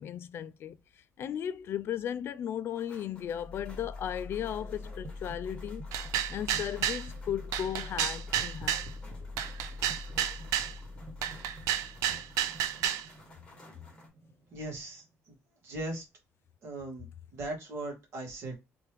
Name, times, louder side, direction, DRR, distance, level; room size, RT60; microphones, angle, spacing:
voice 1, 0.0-5.8 6.3-8.9, left 9 dB, 45° left, 0.3 m, -36 dB
sound 1, 2.7-14.1, left 2 dB, 20° left, 1.6 m, -56 dB
sound 2, 3.1-15.1, left 2 dB, 40° right, 0.8 m, -44 dB
sound 3, 5.9-7.0 7.5-8.9 9.4-10.7 11.2-13.1, right 11 dB, 85° right, 0.4 m, -31 dB
voice 2, 14.5-15.0 15.6-16.0 16.6-17.1 17.3-18.6, right 2 dB, 60° right, 1.8 m, -38 dB
3.4 x 3.3 x 3.0 m
cardioid pair, 145°, 5 cm